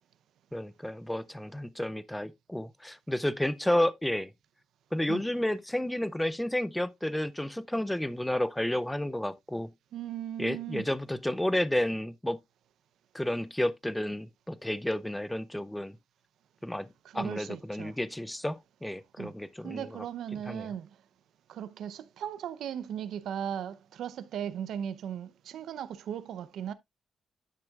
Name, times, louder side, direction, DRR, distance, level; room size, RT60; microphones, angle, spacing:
voice 1, 0.5-4.3 4.9-9.7 10.4-12.4 13.1-15.9 16.6-16.9 17.1-20.1 20.3-20.7, left 1 dB, 5° left, 0.5 m, -31 dB
voice 2, 9.9-10.9 17.1-17.9 19.2-19.3 19.6-20.9 21.5-25.3 25.5-26.7, right 9 dB, 85° right, 0.7 m, -37 dB
10.0 x 6.4 x 2.3 m
wide cardioid pair, 165°, 0 cm